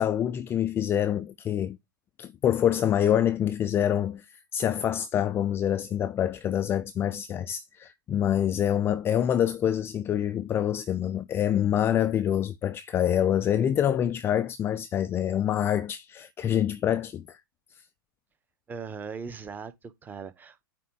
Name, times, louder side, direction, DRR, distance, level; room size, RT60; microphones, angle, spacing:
voice 1, 0.0-1.8 2.2-17.4, left 10 dB, 20° left, 0.4 m, -26 dB
voice 2, 18.7-20.6, right 5 dB, 15° right, 1.0 m, -39 dB
9.0 x 3.7 x 4.5 m
hypercardioid pair, 115°, 12 cm